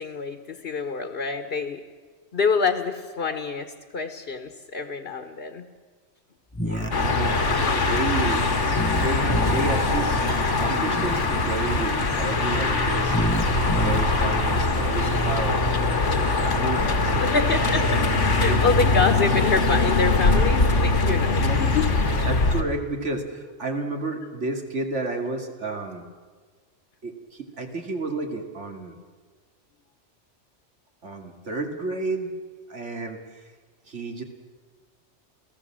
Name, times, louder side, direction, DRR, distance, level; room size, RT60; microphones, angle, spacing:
voice 1, 0.0-1.8 2.3-5.7 17.2-18.0 18.4-22.0, left 4 dB, 55° left, 8 dB, 1.4 m, -26 dB
sound 1, 6.5-6.9 8.7-9.6 10.9-11.3 13.0-14.0, left 1 dB, 10° left, 0.8 m, -28 dB
voice 2, 6.5-7.4 7.7-8.4 9.0-10.2 10.6-13.2 13.8-15.6 16.1-17.4 18.4-18.6 21.3-21.7 22.2-26.0 27.0-28.9 31.0-32.3 32.7-33.2 33.9-34.2, right 3 dB, 85° right, 4 dB, 2.7 m, -31 dB
sound 2, 6.9-22.6, left 3 dB, 90° left, 2.1 m, -22 dB
28.5 x 17.0 x 7.6 m, 1.5 s
omnidirectional pair, 1.2 m